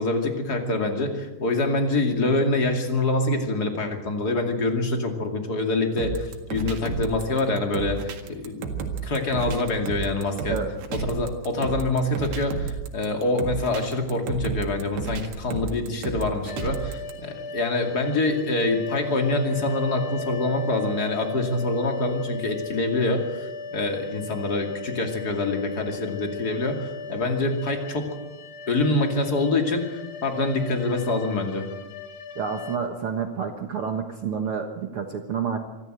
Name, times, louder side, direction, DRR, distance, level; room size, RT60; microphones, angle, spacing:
voice 1, 0.0-8.7 9.0-10.6 11.1-28.1 28.7-31.7, left 2 dB, 30° left, 4 dB, 2.4 m, -25 dB
sound 1, 6.0-17.1, right 5 dB, 90° right, 3.9 m, -32 dB
sound 2, 16.5-32.8, left 3 dB, 60° left, 2.8 m, -37 dB
voice 2, 32.3-35.6, right 6 dB, 65° right, 5 dB, 1.3 m, -29 dB
25.0 x 14.0 x 7.9 m, 1.1 s
omnidirectional pair, 4.4 m